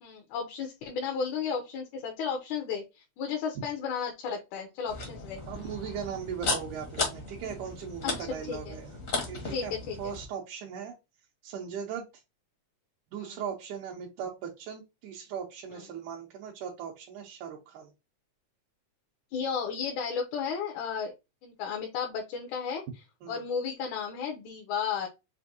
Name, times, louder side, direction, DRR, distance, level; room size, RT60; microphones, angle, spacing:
voice 1, 0.0-5.4 8.0-8.1 8.5-8.8 9.5-10.1 13.2-13.4 19.3-21.1 21.4-22.8 23.3-25.1, left 6 dB, 80° left, 2 dB, 2.2 m, -33 dB
sound 1, 4.9-10.2, left 3 dB, 55° left, 0.8 m, -35 dB
voice 2, 5.5-9.7 10.0-10.9 11.4-12.1 13.1-17.9 23.2-23.4, right 8 dB, 85° right, 0 dB, 2.2 m, -38 dB
6.0 x 2.6 x 2.6 m, 0.25 s
omnidirectional pair, 3.4 m